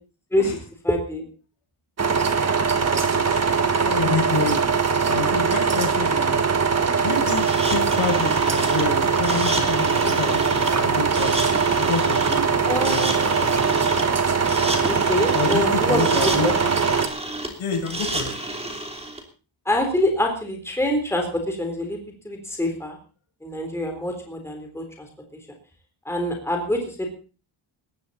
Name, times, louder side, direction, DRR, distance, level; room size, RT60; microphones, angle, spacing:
voice 1, 0.8-1.2 12.6-13.5 14.9-16.5 19.7-22.0 22.2-23.0 23.4-25.1 26.1-27.1, left 1 dB, 5° left, 2 dB, 3.6 m, -25 dB
sound 1, 2.0-17.1, right 5 dB, 30° right, 1.7 m, -21 dB
voice 2, 3.2-4.7 5.1-6.4 7.0-11.5 11.8-13.7 15.3-17.0 17.6-18.3, left 4 dB, 70° left, 2 dB, 7.2 m, -28 dB
sound 2, 7.3-19.2, right 1 dB, 10° right, 3.3 m, -31 dB
20.0 x 15.0 x 4.2 m, 0.36 s
wide cardioid pair, 170°, 49 cm